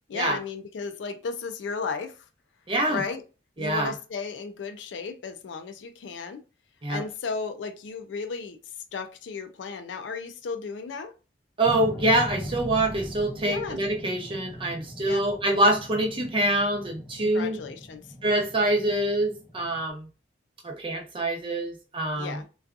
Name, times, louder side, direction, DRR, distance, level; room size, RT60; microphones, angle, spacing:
voice 1, 0.1-2.2 2.9-3.2 3.6-6.4 6.9-8.6 8.9-11.1 13.4-13.8 15.0-15.2 17.2-18.0 22.1-22.5, left 5 dB, 75° left, 0.4 m, -34 dB
voice 2, 2.7-3.0 3.6-3.9 6.8-7.0 11.6-17.6 18.2-20.1 20.6-22.4, right 1 dB, 30° right, 0.7 m, -25 dB
sound 1, 11.6-19.9, equal, 10° left, 0.5 m, -40 dB
2.6 x 2.3 x 2.3 m
head